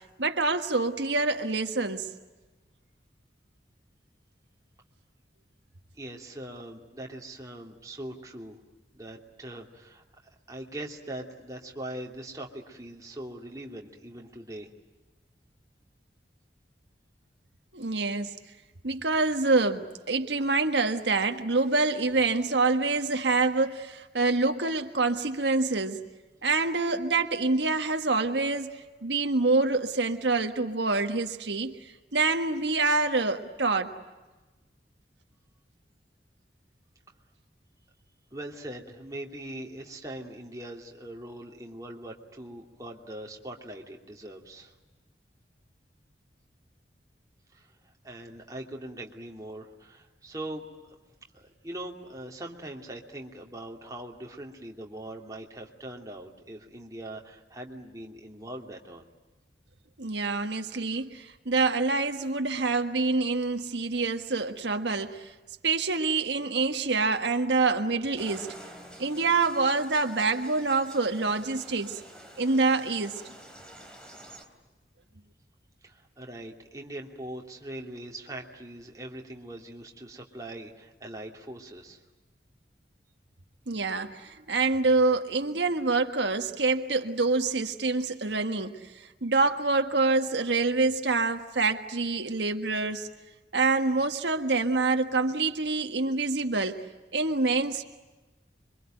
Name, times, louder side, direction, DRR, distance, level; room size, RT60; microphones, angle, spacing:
voice 1, 0.2-2.1 17.7-18.3 18.8-26.0 26.4-31.7 32.1-33.9 60.0-65.3 65.6-68.5 69.0-72.0 72.4-73.2 83.7-93.1 93.5-96.8 97.1-97.8, right 3 dB, 90° right, 6 dB, 1.5 m, -26 dB
voice 2, 5.9-8.6 8.9-10.0 10.5-14.7 38.3-44.7 47.5-50.9 51.3-59.1 75.8-82.0, right 1 dB, 20° right, 0 dB, 2.8 m, -41 dB
sound 1, 68.2-74.4, right 1 dB, 5° left, 3.5 m, -48 dB
27.0 x 24.0 x 9.1 m, 1.2 s
head